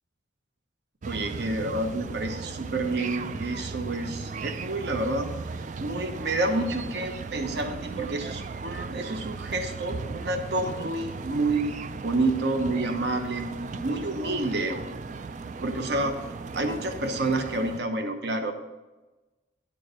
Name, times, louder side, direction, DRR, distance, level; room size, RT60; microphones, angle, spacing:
sound 1, 1.0-17.8, right 4 dB, 40° right, 0.3 m, -37 dB
voice 1, 1.1-5.3 5.8-11.7 12.0-14.8 15.6-16.2 16.5-18.5, right 2 dB, 60° right, 6 dB, 0.9 m, -29 dB
10.0 x 4.7 x 6.3 m, 1.1 s
head